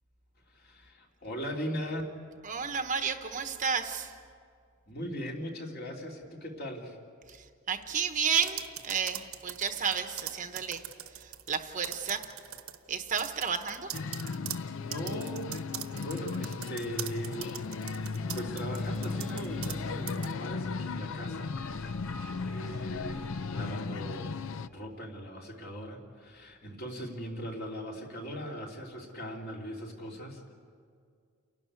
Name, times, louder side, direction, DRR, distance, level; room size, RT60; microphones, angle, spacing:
voice 1, 0.5-2.0 4.9-7.0 14.6-15.5 16.0-21.6 22.0-24.4 24.6-30.5, equal, 45° left, 0 dB, 3.0 m, -39 dB
voice 2, 2.4-4.2 7.3-10.8 11.1-12.3 12.9-13.9 22.7-22.9, right 6 dB, 35° right, 7 dB, 1.0 m, -32 dB
sound 1, 8.3-11.6 11.8-12.8 13.2-19.8 20.1-20.3, right 12 dB, 75° right, 1.1 m, -41 dB
sound 2, 13.9-24.7, left 4 dB, 60° left, 0.5 m, -36 dB
sound 3, 16.5-24.8, left 1 dB, 5° left, 0.5 m, -43 dB
29.0 x 12.0 x 9.5 m, 2.2 s
head